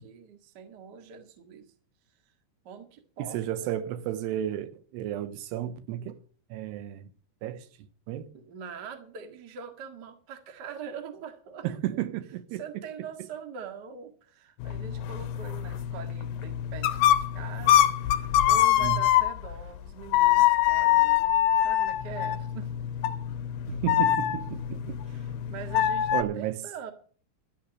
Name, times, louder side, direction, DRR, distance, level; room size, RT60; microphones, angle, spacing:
voice 1, 0.0-1.7 2.6-3.7 8.3-11.7 12.5-22.7 25.1-26.9, right 6 dB, 50° right, 1.2 m, -43 dB
voice 2, 3.2-6.2 6.5-7.1 7.4-7.7 8.1-8.3 11.6-12.8 18.8-19.1 23.7-25.0 26.1-26.6, right 11 dB, 90° right, 3.0 m, -33 dB
sound 1, 14.6-19.6 20.1-26.2, left 12 dB, 75° left, 2.1 m, -24 dB
13.0 x 7.2 x 7.7 m
omnidirectional pair, 4.8 m